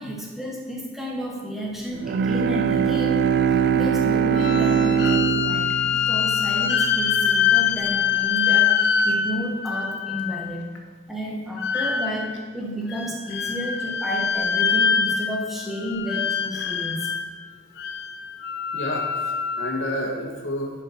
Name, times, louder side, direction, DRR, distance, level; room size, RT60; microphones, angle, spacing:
voice 1, 0.0-3.2 3.5-10.6 11.1-17.1, equal, ahead, -3 dB, 1.4 m, -31 dB
Bowed string instrument, 1.9-7.3, right 7 dB, 55° right, 0.3 m, -22 dB
sound 1, 4.3-10.5 11.6-12.4 12.9-15.5 15.8-17.3 17.8-19.8, left 7 dB, 60° left, 0.7 m, -24 dB
voice 2, 18.7-20.7, left 1 dB, 85° left, 1 dB, 1.4 m, -30 dB
11.0 x 5.0 x 4.5 m, 1.5 s
head